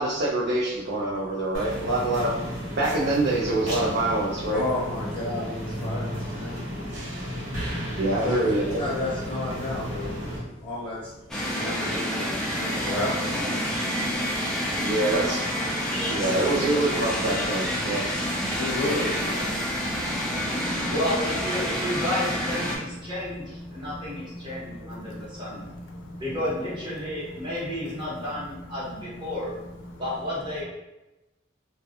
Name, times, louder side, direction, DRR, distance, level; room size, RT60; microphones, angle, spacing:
voice 1, 0.0-2.4 2.7-4.6 8.0-8.8 13.4-13.5 14.8-15.4 16.1-18.1, right 2 dB, 60° right, -5 dB, 0.4 m, -25 dB
sound 1, 1.5-10.4, equal, 85° right, 0.9 m, -33 dB
voice 2, 4.5-6.6 8.2-8.4 8.8-10.2 10.6-11.1 11.5-13.5 18.5-19.8, left 2 dB, 30° left, -9 dB, 0.9 m, -32 dB
sound 2, 11.3-22.8, equal, 5° left, 0.4 m, -28 dB
voice 3, 14.4-14.9 16.0-16.3 17.2-17.3 17.8-18.6 19.5-20.9 22.7-26.3 27.0-27.7 28.6-29.3 29.8-30.0, equal, 70° left, 2 dB, 0.5 m, -42 dB
voice 4, 20.9-25.7 26.2-29.6 30.0-30.6, left 1 dB, 25° right, -8 dB, 1.0 m, -31 dB
2.3 x 2.1 x 2.8 m, 0.99 s
head